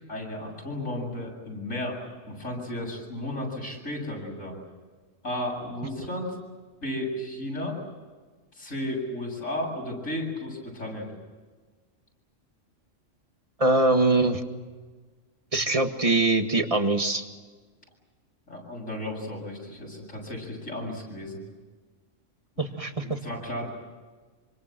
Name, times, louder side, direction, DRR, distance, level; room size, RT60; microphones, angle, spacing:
voice 1, 0.1-2.0 2.3-4.6 5.2-6.4 6.8-7.8 8.5-11.1 18.5-21.4 22.6-22.7 23.0-23.7, left 1 dB, 85° left, -1 dB, 8.5 m, -34 dB
voice 2, 13.6-14.4 15.5-17.2 22.6-23.2, right 2 dB, 25° right, 6 dB, 1.9 m, -23 dB
26.5 x 25.5 x 7.7 m, 1.4 s
omnidirectional pair, 1.3 m